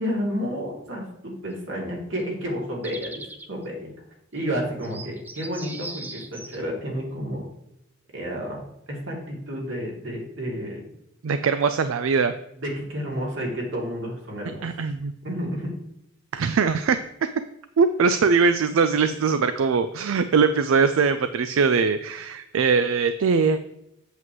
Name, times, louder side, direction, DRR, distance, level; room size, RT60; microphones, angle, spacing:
voice 1, 0.0-3.1 3.5-3.9 4.3-7.4 8.1-8.6 8.9-10.8 12.6-14.7 15.2-15.7, equal, 70° right, -2 dB, 2.6 m, -30 dB
sound 1, 2.2-2.3 2.8-3.5 4.4-4.5 4.8-6.6, right 2 dB, 10° right, 0.4 m, -39 dB
voice 2, 11.2-12.3 14.6-15.1 16.3-17.0 17.8-23.6, right 5 dB, 85° right, 11 dB, 0.4 m, -21 dB
8.2 x 7.7 x 3.1 m, 0.81 s
head